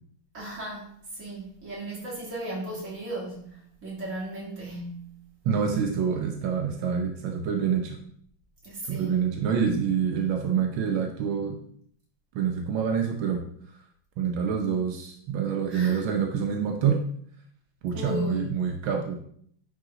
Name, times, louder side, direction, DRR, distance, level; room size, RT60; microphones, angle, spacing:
voice 1, 0.3-5.2 8.6-9.2 15.7-16.1 17.9-18.6, right 1 dB, 40° right, -6 dB, 3.2 m, -36 dB
voice 2, 5.4-8.0 8.9-11.6 12.3-13.4 14.2-17.0 17.8-19.2, right 7 dB, 85° right, 3 dB, 1.6 m, -26 dB
9.9 x 3.9 x 3.8 m, 0.63 s
omnidirectional pair, 2.1 m